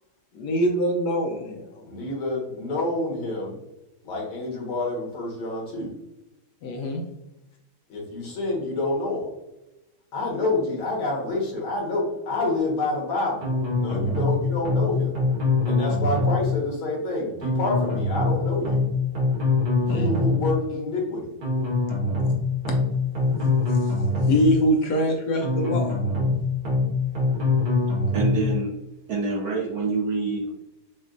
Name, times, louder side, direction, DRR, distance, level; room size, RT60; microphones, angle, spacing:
voice 1, 0.3-1.8 6.6-7.0 19.9-20.1 23.3-23.9 24.2-25.9, equal, 70° left, 2 dB, 1.1 m, -24 dB
voice 2, 1.9-3.6 4.0-5.9 7.9-9.3 10.1-15.1 15.6-18.8 19.8-21.3, left 2 dB, 85° left, -2 dB, 2.2 m, -28 dB
sound 1, 13.4-14.3 14.6-14.9 15.1-16.4 17.4-18.3 18.6-18.9 19.1-20.4 21.4-22.3 22.6-22.9 23.1-24.4 25.4-26.3 26.6-26.9 27.1-28.4, left 2 dB, 90° right, 2.4 m, -23 dB
voice 3, 28.1-28.7 29.1-30.5, right 4 dB, 70° right, -2 dB, 0.9 m, -26 dB
6.2 x 2.4 x 2.5 m, 0.94 s
omnidirectional pair, 2.2 m